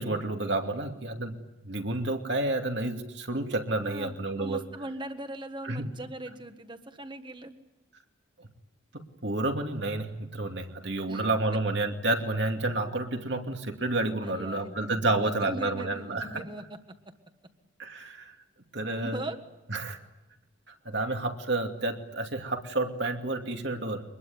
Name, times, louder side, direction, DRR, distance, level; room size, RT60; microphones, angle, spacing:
voice 1, 0.0-1.3 1.6-4.6 5.6-5.9 8.9-16.4 17.8-18.3 18.7-19.2 19.7-20.0 20.8-24.0, right 2 dB, 60° right, 4 dB, 2.6 m, -30 dB
voice 2, 3.8-7.5 11.1-11.2 14.2-16.8 18.9-19.4, right 1 dB, 25° right, 8 dB, 1.5 m, -40 dB
24.0 x 21.0 x 9.6 m, 0.98 s
head